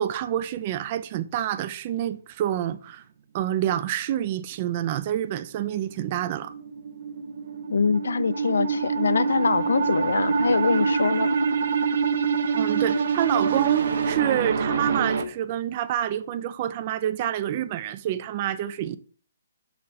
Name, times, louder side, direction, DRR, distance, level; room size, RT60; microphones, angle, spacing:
voice 1, 0.0-3.0 3.3-6.5 12.6-19.0, right 11 dB, 30° right, 0.3 m, -27 dB
sound 1, 6.1-15.2, right 5 dB, 60° right, 0.8 m, -26 dB
voice 2, 7.7-11.3, left 5 dB, 80° left, 0.4 m, -24 dB
6.4 x 4.1 x 4.1 m
hypercardioid pair, 160°, 0 cm